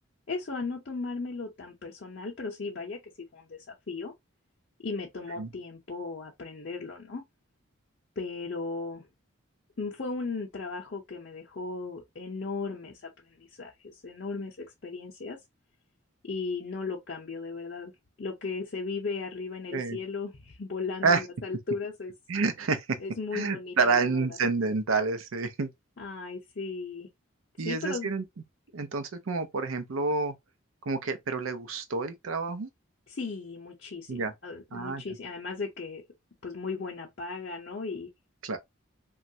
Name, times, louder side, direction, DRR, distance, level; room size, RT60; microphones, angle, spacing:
voice 1, 0.3-3.0 3.3-4.1 4.8-7.2 8.2-9.1 9.8-15.4 16.2-17.9 18.2-22.1 23.0-24.3 26.0-27.1 27.6-28.1 33.1-36.0 36.4-38.1, left 4 dB, 50° left, 0.6 m, -36 dB
voice 2, 22.3-23.0 23.3-25.7 27.6-28.2 28.7-30.3 30.9-32.7 34.1-34.3 34.7-35.0 38.4-38.6, right 4 dB, 80° right, 0.6 m, -28 dB
3.0 x 2.3 x 2.6 m
head